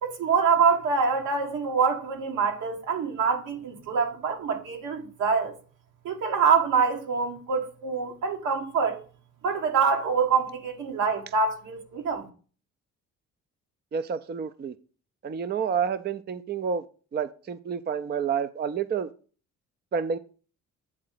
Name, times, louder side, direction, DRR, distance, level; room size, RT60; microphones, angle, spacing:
voice 1, 0.0-5.6 6.0-9.0 9.4-12.3, right 5 dB, 85° right, 2.0 m, -25 dB
voice 2, 13.9-14.7 15.2-16.8 17.1-19.1 19.9-20.2, right 6 dB, 35° right, 0.5 m, -29 dB
8.6 x 3.9 x 6.6 m
cardioid pair, 90°, 30 cm